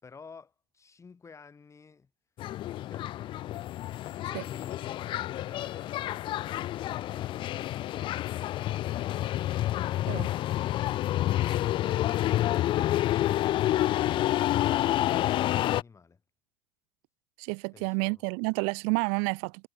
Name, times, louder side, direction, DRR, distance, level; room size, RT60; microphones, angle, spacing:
voice 1, 0.0-2.1 2.7-3.7 4.0-8.4 17.7-18.2, left 5 dB, 20° left, 5.6 m, -52 dB
sound 1, 2.4-15.8, left 14 dB, 35° left, 0.4 m, -29 dB
voice 2, 17.4-19.7, right 40 dB or more, 60° right, 0.6 m, -30 dB
hypercardioid pair, 100°, 14 cm